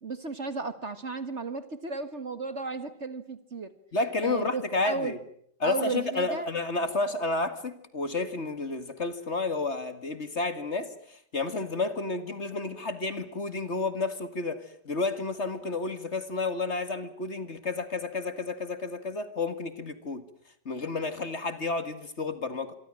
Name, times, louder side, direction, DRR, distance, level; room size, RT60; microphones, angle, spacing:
voice 1, 0.0-3.7 4.2-5.1 5.6-6.5, right 4 dB, 40° right, 12 dB, 1.8 m, -34 dB
voice 2, 3.9-5.2 5.6-20.2 20.7-22.8, left 3 dB, 40° left, 11 dB, 2.2 m, -31 dB
26.5 x 24.0 x 7.4 m, 0.65 s
omnidirectional pair, 1.9 m